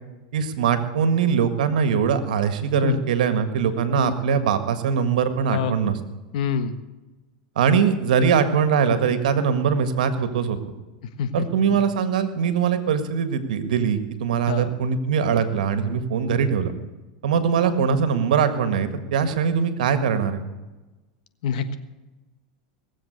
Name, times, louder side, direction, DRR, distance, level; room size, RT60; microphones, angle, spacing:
voice 1, 0.3-6.0 7.6-10.6 11.3-16.7 17.2-20.4, right 7 dB, 80° right, 10 dB, 1.7 m, -22 dB
voice 2, 5.5-5.9 6.3-6.7 11.2-11.8 14.5-14.7 21.4-21.8, left 6 dB, 70° left, 10 dB, 1.4 m, -26 dB
19.0 x 7.7 x 8.0 m, 1.1 s
hypercardioid pair, 110°, 4 cm